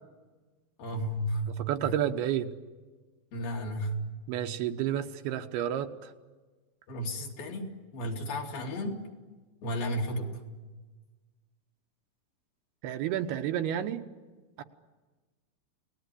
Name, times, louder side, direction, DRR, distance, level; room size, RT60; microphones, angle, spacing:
voice 1, 0.8-1.9 3.3-4.1 6.9-9.0 9.6-10.4, equal, 65° left, 0 dB, 4.6 m, -33 dB
voice 2, 1.6-2.5 4.3-6.1 12.8-14.0 14.6-14.7, right 10 dB, 85° right, 7 dB, 3.1 m, -30 dB
29.5 x 19.5 x 9.9 m, 1.3 s
omnidirectional pair, 4.4 m